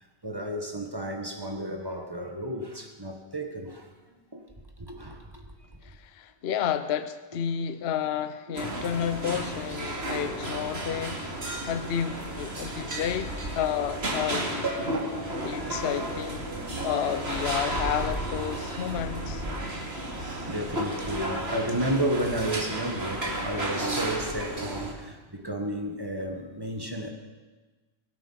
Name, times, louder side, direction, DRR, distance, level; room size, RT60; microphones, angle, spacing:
voice 1, 0.2-4.4 4.8-5.8 8.5-8.6 9.8-10.0 11.7-11.9 13.4-13.6 15.3-16.1 16.7-17.0 20.0-27.1, right 1 dB, 20° right, 3 dB, 1.6 m, -33 dB
voice 2, 5.8-14.7 15.4-16.4 16.8-19.4, left 9 dB, 60° left, 12 dB, 0.9 m, -31 dB
sound 1, 8.5-24.9, right 1 dB, 55° right, 2.7 m, -33 dB
23.0 x 8.8 x 5.8 m, 1.3 s
omnidirectional pair, 1.3 m